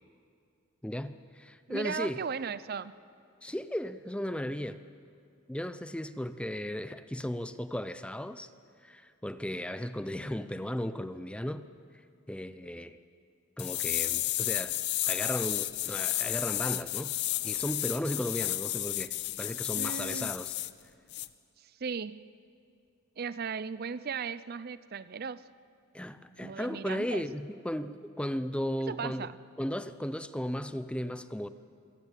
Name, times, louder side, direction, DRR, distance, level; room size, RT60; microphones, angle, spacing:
voice 1, 0.8-2.2 3.4-4.8 5.5-8.5 8.8-11.7 12.3-13.0 13.6-14.8 15.1-17.1 17.4-20.6 25.9-29.3 29.6-31.5, equal, 5° left, 12 dB, 0.6 m, -35 dB
voice 2, 1.7-2.9 19.7-20.3 21.6-22.2 23.2-25.4 26.4-27.2 28.9-29.4, right 6 dB, 45° right, 16 dB, 0.5 m, -37 dB
sound 1, 13.6-20.7 21.1-21.3, left 15 dB, 55° left, 0.6 m, -32 dB
26.0 x 18.0 x 8.3 m, 2.4 s
head